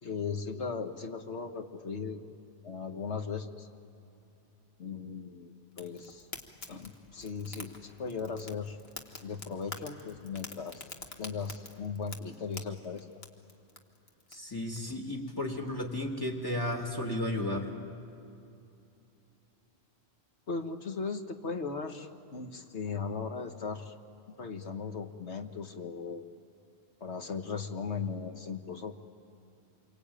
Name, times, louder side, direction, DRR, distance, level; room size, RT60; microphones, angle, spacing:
voice 1, 0.0-2.2 2.6-3.7 4.8-6.3 6.7-8.8 9.2-10.9 11.2-13.1 20.5-23.9 24.4-26.3 27.0-28.9, left 5 dB, 80° left, 6 dB, 1.7 m, -37 dB
Fire, 5.8-14.8, left 3 dB, 60° left, 1.9 m, -48 dB
voice 2, 14.3-17.7, left 1 dB, 20° left, 1 dB, 3.0 m, -33 dB
28.0 x 23.5 x 9.0 m, 2.7 s
omnidirectional pair, 1.2 m